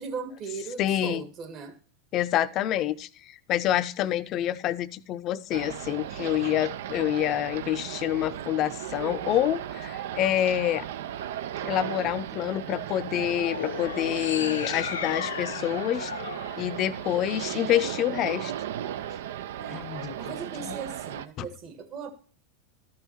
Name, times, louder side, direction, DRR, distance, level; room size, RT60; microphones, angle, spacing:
voice 1, 0.0-1.8 19.6-22.1, right 5 dB, 45° right, 1.7 m, -38 dB
voice 2, 0.8-1.2 2.1-10.9 11.6-16.1 16.6-18.5 19.7-20.3 21.4-21.5, left 12 dB, 45° left, 0.6 m, -27 dB
sound 1, 5.5-21.3, right 11 dB, 75° right, 0.5 m, -36 dB
sound 2, 13.3-17.6, left 7 dB, 90° left, 0.7 m, -35 dB
12.5 x 5.6 x 4.5 m
hypercardioid pair, 100°, 0 cm